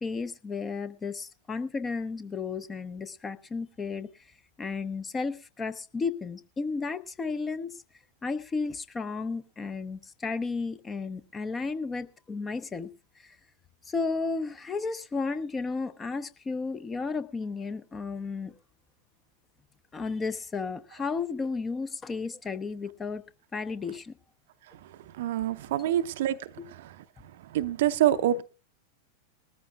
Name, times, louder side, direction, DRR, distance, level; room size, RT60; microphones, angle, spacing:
voice 1, 0.0-4.1 4.6-7.8 8.2-12.9 13.2-13.4 13.9-18.6 19.9-23.2 23.5-24.1 25.8-25.9, left 4 dB, 15° left, 0.8 m, -33 dB
voice 2, 25.2-26.4 27.5-28.4, right 11 dB, 55° right, 0.6 m, -25 dB
20.5 x 14.0 x 2.4 m
figure-of-eight pair, 90°, 0 cm